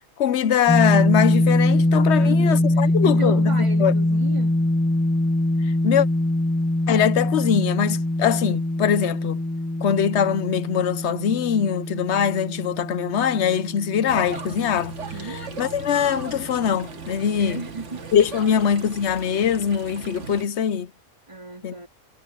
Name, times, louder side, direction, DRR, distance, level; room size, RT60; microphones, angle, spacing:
voice 1, 0.2-3.9 5.8-6.1 6.9-9.4 9.8-14.9 15.3-17.6 18.1-20.9 21.6-21.7, left 8 dB, 65° left, 1.0 m, -22 dB
Dist Chr Emj rock up, 0.7-16.6, left 1 dB, 10° left, 1.6 m, -23 dB
voice 2, 2.1-4.5 15.1-15.4 17.4-18.0 21.3-21.9, right 3 dB, 25° right, 2.4 m, -35 dB
sound 1, 14.1-20.5, right 6 dB, 65° right, 1.9 m, -37 dB
omnidirectional pair, 1.3 m